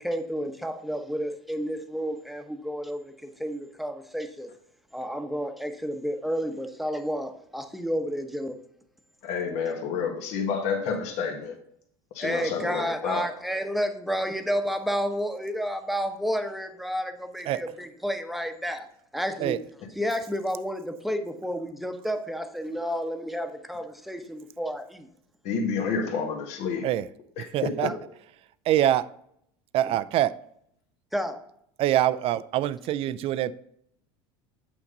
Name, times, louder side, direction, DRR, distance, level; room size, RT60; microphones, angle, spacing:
voice 1, 0.0-4.5 4.9-8.6 12.2-18.9 19.1-19.6 20.0-25.1 27.8-27.9 31.1-31.4, equal, ahead, 1.0 m, -31 dB
voice 2, 9.2-11.6 12.1-13.3 25.4-26.9 27.4-27.9, left 5 dB, 65° left, 1.7 m, -29 dB
voice 3, 27.5-27.9 28.7-29.1 29.7-30.3 31.8-33.5, right 12 dB, 50° right, 0.4 m, -24 dB
8.3 x 6.0 x 3.9 m
hypercardioid pair, 85°, 13 cm